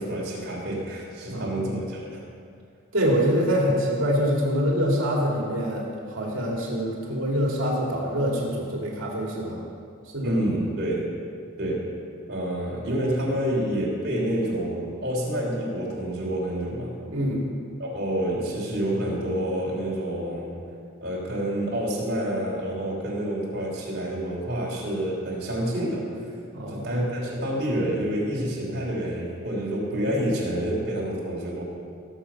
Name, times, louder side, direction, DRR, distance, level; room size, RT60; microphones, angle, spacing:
voice 1, 0.0-2.2 10.2-11.1 11.6-11.9 12.3-16.9 17.8-20.6 21.0-26.3 26.7-31.6, right 1 dB, 45° right, -4 dB, 3.2 m, -28 dB
voice 2, 2.9-5.9 6.1-9.6 10.1-10.4 17.1-17.5 26.5-26.9, equal, 70° right, -2 dB, 2.3 m, -25 dB
17.5 x 7.3 x 5.7 m, 2.3 s
head